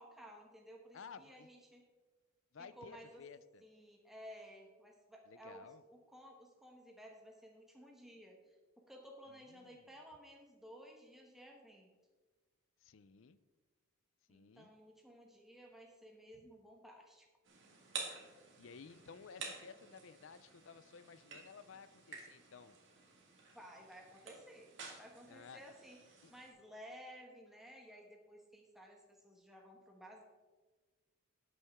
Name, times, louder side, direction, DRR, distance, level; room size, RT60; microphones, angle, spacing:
voice 1, 0.0-1.8 2.6-3.2 3.6-8.6 8.9-11.9 14.3-17.3 23.5-24.7 25.0-30.2, equal, ahead, 0 dB, 1.1 m, -56 dB
voice 2, 0.9-1.5 2.5-3.6 5.3-5.8 9.5-9.8 12.8-13.4 14.3-14.7 18.6-22.8 25.3-25.6 26.2-26.3, left 5 dB, 60° left, 15 dB, 0.5 m, -55 dB
sound 1, 17.4-26.5, right 5 dB, 55° right, 1.9 m, -51 dB
12.5 x 8.5 x 3.6 m, 1.3 s
head